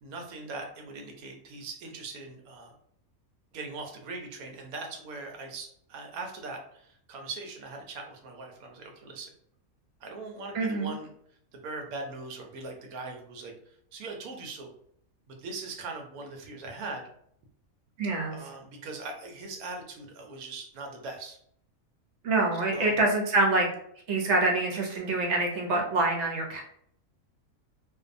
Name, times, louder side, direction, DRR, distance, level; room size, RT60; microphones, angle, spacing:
voice 1, 0.0-2.7 3.5-9.3 10.0-11.1 11.5-13.5 13.9-14.7 15.3-17.1 18.3-21.4 22.5-23.0, right 3 dB, 90° right, 2 dB, 1.1 m, -40 dB
voice 2, 10.5-11.0 18.0-18.4 22.2-23.7 24.1-26.6, right 2 dB, 60° right, 0 dB, 0.8 m, -26 dB
2.6 x 2.2 x 2.5 m, 0.68 s
omnidirectional pair, 1.5 m